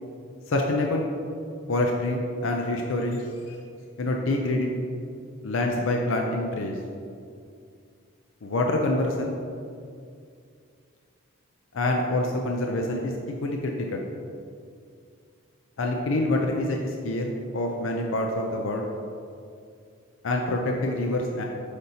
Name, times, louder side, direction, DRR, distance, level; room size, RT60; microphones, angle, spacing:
voice 1, 0.5-1.1 1.7-3.6 4.0-4.8 5.4-6.8 8.4-9.4 11.7-13.1 13.4-14.1 15.8-18.8 20.2-21.4, left 1 dB, 70° left, 1 dB, 0.5 m, -26 dB
7.9 x 5.2 x 2.8 m, 2.4 s
head